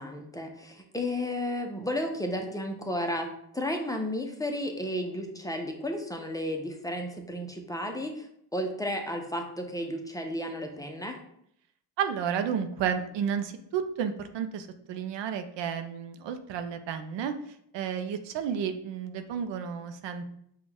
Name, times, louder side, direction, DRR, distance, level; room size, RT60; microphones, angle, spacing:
voice 1, 0.0-8.3 8.5-11.2, left 1 dB, 10° left, 3 dB, 0.6 m, -33 dB
voice 2, 12.0-20.4, right 7 dB, 90° right, 8 dB, 0.5 m, -32 dB
5.1 x 2.4 x 3.4 m, 0.72 s
cardioid pair, 75°, 42 cm